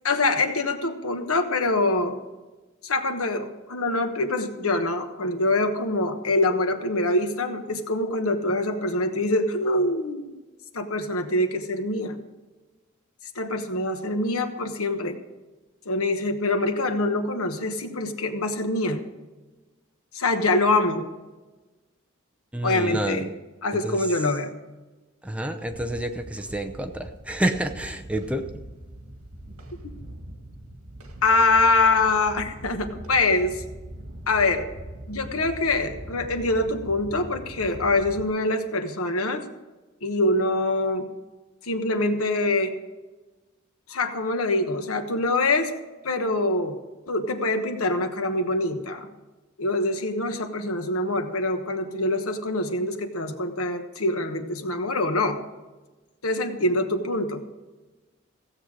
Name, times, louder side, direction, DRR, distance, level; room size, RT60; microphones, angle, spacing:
voice 1, 0.0-2.2 2.8-10.3 10.7-12.2 13.3-15.2 15.8-19.0 20.1-21.1 22.6-23.3 23.6-24.5 31.2-33.6 34.3-34.6 35.1-39.4 40.0-41.1 41.6-42.7 43.9-45.7 46.0-46.8 47.1-49.1 49.6-55.4 56.2-57.5, left 2 dB, 80° left, 7 dB, 1.2 m, -24 dB
voice 2, 22.5-23.3 23.8-24.0 25.2-28.6, right 1 dB, 5° right, 5 dB, 0.7 m, -29 dB
sound 1, 25.7-38.3, right 1 dB, 75° right, 2.0 m, -41 dB
16.0 x 7.9 x 4.9 m, 1.2 s
head